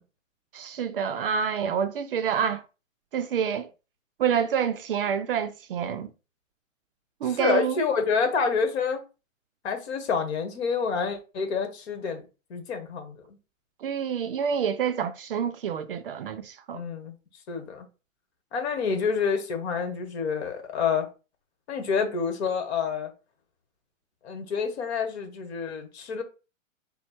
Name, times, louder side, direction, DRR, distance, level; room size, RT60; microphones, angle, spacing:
voice 1, 0.5-2.6 3.1-3.7 4.2-6.1 7.2-7.8 13.8-16.8, right 7 dB, 45° right, 0.4 m, -27 dB
voice 2, 7.2-9.0 9.6-12.2 12.5-13.4 16.7-17.1 17.5-17.9 18.5-21.1 21.7-23.1 24.2-26.2, left 5 dB, 55° left, 1.4 m, -28 dB
4.2 x 2.1 x 4.2 m
hypercardioid pair, 140°, 40 cm